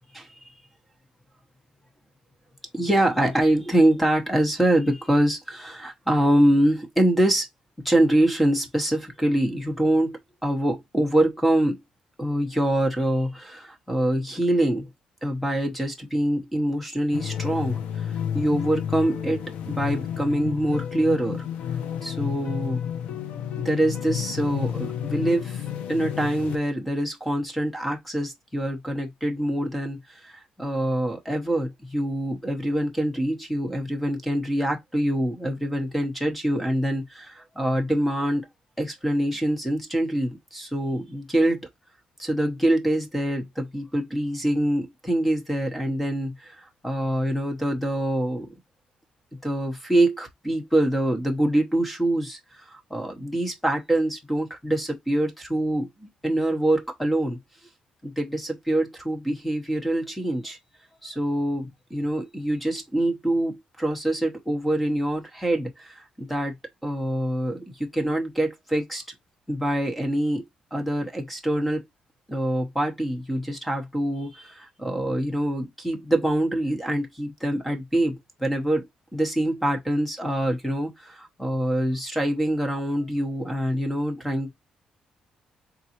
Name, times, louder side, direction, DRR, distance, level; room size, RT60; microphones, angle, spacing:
voice 1, 2.7-7.5 7.8-11.8 12.2-14.9 15.2-17.8 18.3-21.4 22.0-22.8 23.6-25.6 25.9-38.5 38.8-41.7 42.2-48.5 49.4-57.4 58.0-60.6 61.0-66.6 66.8-69.0 69.5-70.5 70.7-71.8 72.3-84.5, right 1 dB, 5° left, 0.9 m, -25 dB
sound 1, 17.1-26.6, left 9 dB, 85° left, 0.8 m, -31 dB
3.9 x 3.7 x 2.8 m
cardioid pair, 165°, 2 cm